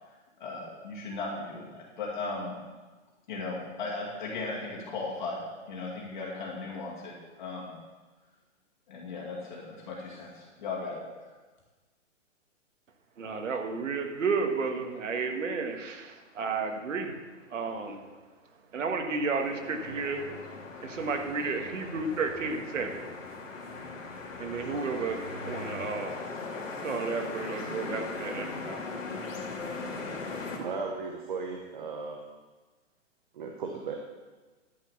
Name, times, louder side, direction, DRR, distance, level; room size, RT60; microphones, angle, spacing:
voice 1, 0.4-2.6 3.3-7.7 8.9-11.0, left 3 dB, 40° left, -4 dB, 2.3 m, -37 dB
voice 2, 13.2-17.2 17.5-18.0 18.7-20.2 20.8-23.0 24.4-26.2 26.8-28.8, right 4 dB, 75° right, 4 dB, 1.9 m, -32 dB
sound 1, 19.4-30.6, left 3 dB, 85° left, 3.0 m, -39 dB
voice 3, 30.6-32.2 33.3-33.9, right 4 dB, 40° right, 2 dB, 0.9 m, -36 dB
12.5 x 5.5 x 7.0 m, 1.3 s
hypercardioid pair, 180°, 38 cm